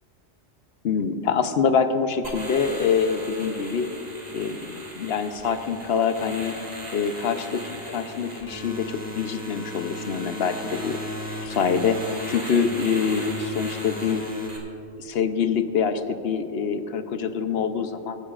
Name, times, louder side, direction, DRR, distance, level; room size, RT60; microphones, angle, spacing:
voice 1, 0.8-3.9 4.3-6.6 6.9-11.0 11.4-12.0 12.3-14.2 15.0-18.2, left 6 dB, 65° left, 8 dB, 1.0 m, -25 dB
sound 1, 2.2-14.6, equal, 35° right, 2.1 m, -36 dB
25.5 x 9.9 x 2.4 m, 2.7 s
omnidirectional pair, 1.2 m